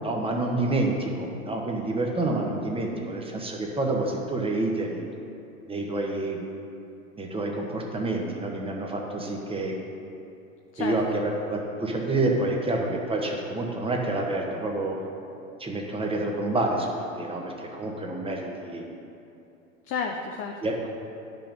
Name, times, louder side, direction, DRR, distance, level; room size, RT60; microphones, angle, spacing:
voice 1, 0.0-5.0 5.7-6.4 7.2-9.7 10.8-15.0 15.6-18.8 20.6-20.7, right 2 dB, 15° right, 0 dB, 1.4 m, -28 dB
voice 2, 10.7-11.2 19.8-20.9, left 5 dB, 35° left, 2 dB, 0.7 m, -32 dB
10.0 x 5.9 x 5.3 m, 2.8 s
hypercardioid pair, 95°, 41 cm